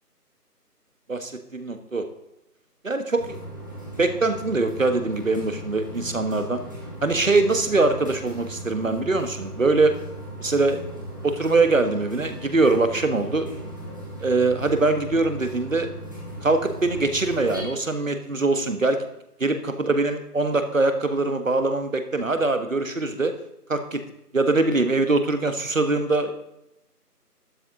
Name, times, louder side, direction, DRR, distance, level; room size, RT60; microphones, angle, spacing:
voice 1, 1.1-2.0 2.8-3.4 4.0-6.6 7.0-9.9 10.4-10.8 11.2-13.5 14.2-15.9 16.4-19.0 19.4-23.3 23.7-24.0 24.3-26.3, right 3 dB, 55° right, 8 dB, 1.6 m, -22 dB
sound 1, 3.2-17.6, right 1 dB, 15° right, 1.4 m, -37 dB
12.0 x 11.0 x 3.8 m, 0.84 s
figure-of-eight pair, 170°, 48 cm